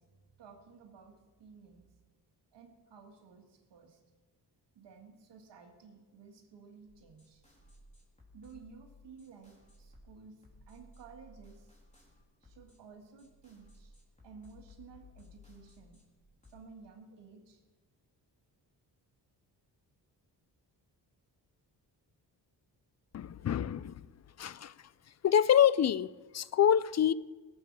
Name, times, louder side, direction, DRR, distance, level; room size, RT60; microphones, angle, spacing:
voice 1, 0.0-1.9 2.5-4.0 4.8-7.4 8.3-11.7 12.4-13.9 14.2-16.0 16.5-17.6, right 5 dB, 85° right, 2.1 m, -55 dB
sound 1, 6.9-16.6, left 2 dB, 15° left, 3.6 m, -59 dB
voice 2, 23.1-23.9 24.4-24.7 25.2-27.1, left 9 dB, 40° left, 0.4 m, -26 dB
17.5 x 8.1 x 6.2 m
cardioid pair, 105°, 41 cm